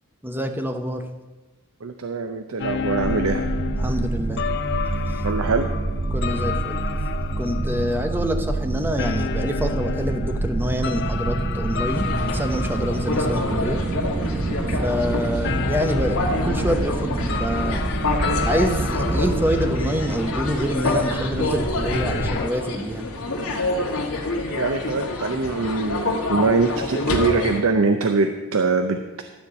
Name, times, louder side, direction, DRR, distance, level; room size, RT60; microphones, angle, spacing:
voice 1, 0.2-1.0 3.8-4.5 6.1-6.8 7.4-12.1 12.3-13.8 14.8-16.2 16.4-17.8 18.5-23.1, equal, 10° right, 6 dB, 0.8 m, -26 dB
voice 2, 1.8-3.5 5.2-5.7 24.5-29.2, right 4 dB, 70° right, 6 dB, 0.7 m, -23 dB
sound 1, 2.6-14.4 14.7-14.9 15.4-20.9 21.2-21.3 21.9-22.5, left 7 dB, 50° left, 0.5 m, -32 dB
sound 2, 3.0-22.4, right 2 dB, 25° right, 0.5 m, -27 dB
sound 3, 11.9-27.6, left 2 dB, 85° left, 1.9 m, -27 dB
13.0 x 4.5 x 8.2 m, 1.2 s
head